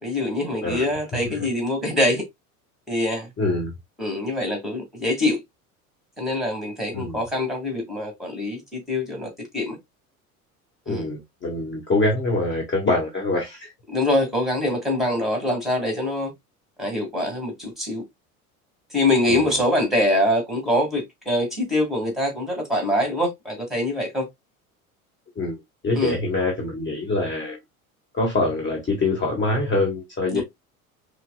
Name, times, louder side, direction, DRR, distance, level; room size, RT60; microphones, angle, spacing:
voice 1, 0.0-2.2 2.9-3.3 4.0-5.4 6.2-9.8 10.9-11.1 13.9-16.3 16.8-18.0 18.9-24.3 26.0-26.2 30.3-30.4, left 1 dB, ahead, 2.1 m, -24 dB
voice 2, 3.4-3.7 6.9-7.2 10.9-13.7 19.3-19.6 25.4-27.6 28.1-30.4, left 2 dB, 25° left, 1.3 m, -24 dB
5.6 x 2.1 x 2.2 m
hypercardioid pair, 70°, 43 cm